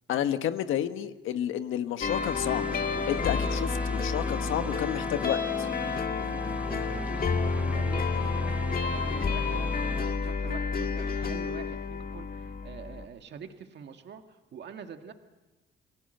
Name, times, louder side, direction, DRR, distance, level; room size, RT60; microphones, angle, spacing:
voice 1, 0.1-2.7 3.1-5.7, left 10 dB, 85° left, 9 dB, 1.4 m, -30 dB
sound 1, 2.0-13.1, left 5 dB, 45° left, 1.9 m, -30 dB
sound 2, 2.0-10.1, right 1 dB, 5° right, 1.1 m, -39 dB
voice 2, 4.9-5.3 5.8-15.1, right 7 dB, 60° right, 6 dB, 1.9 m, -46 dB
29.0 x 20.5 x 8.0 m, 1.1 s
cardioid pair, 90°, 20 cm